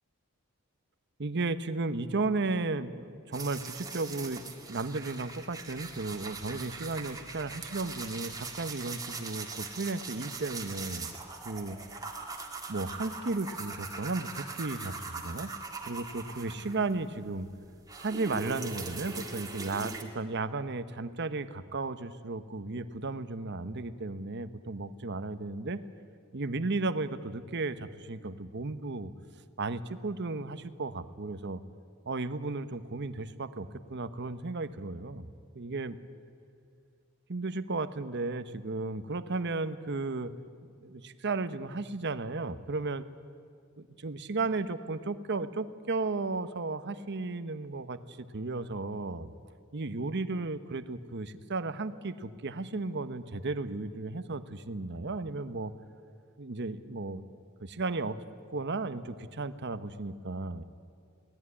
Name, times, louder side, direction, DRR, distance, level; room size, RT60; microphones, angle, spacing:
voice 1, 1.2-4.4 4.7-11.1 11.4-11.8 12.7-15.5 15.9-17.5 18.0-25.8 26.3-29.1 29.6-31.6 32.1-35.3 35.5-36.0 37.3-40.3 40.8-43.0 43.8-49.3 49.7-55.7 56.4-57.2 57.6-58.2 58.5-60.6, right 3 dB, 55° right, 12 dB, 1.0 m, -34 dB
sound 1, 3.3-17.1 17.4-20.0, right 4 dB, 15° right, 2.1 m, -41 dB
23.0 x 17.0 x 9.8 m, 2.3 s
head